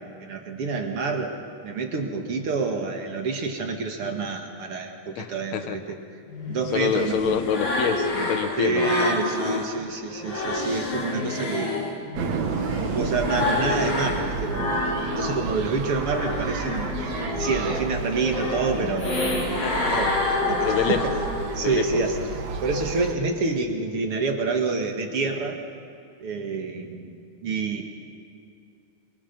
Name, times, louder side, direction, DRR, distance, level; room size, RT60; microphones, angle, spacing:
voice 1, 0.0-1.4 1.6-6.0 6.5-7.4 8.6-11.8 12.4-14.8 15.2-16.9 17.4-20.1 20.5-21.1 21.5-22.2 22.6-25.6 26.2-27.8, right 4 dB, 50° right, 3 dB, 2.5 m, -28 dB
voice 2, 5.2-5.8 6.7-9.2 19.6-20.0 20.6-21.2 21.6-22.3, left 8 dB, 70° left, 9 dB, 2.3 m, -27 dB
sound 1, 6.3-9.7 10.1-15.5 15.8-21.7, left 2 dB, 50° left, 4.5 m, -28 dB
Small town in winter, 12.1-23.1, right 4 dB, 70° right, 2.8 m, -32 dB
26.0 x 24.0 x 5.4 m, 2.6 s
omnidirectional pair, 3.4 m